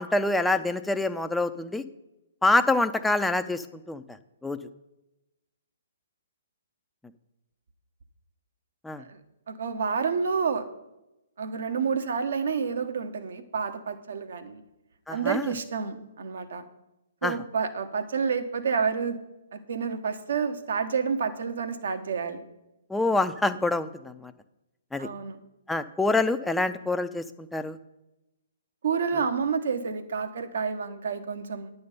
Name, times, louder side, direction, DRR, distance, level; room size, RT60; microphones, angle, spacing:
voice 1, 0.0-1.8 2.4-4.2 4.4-4.6 8.8-9.0 15.1-15.5 17.2-17.4 22.9-24.3 24.9-25.1 25.7-27.8, left 2 dB, 5° left, 9 dB, 0.5 m, -26 dB
voice 2, 9.5-10.7 11.4-14.6 15.1-16.6 17.2-19.2 19.5-22.4 25.0-25.4 28.8-31.7, right 5 dB, 65° right, 8 dB, 1.1 m, -29 dB
10.5 x 6.9 x 5.4 m, 0.96 s
figure-of-eight pair, 130°, 0 cm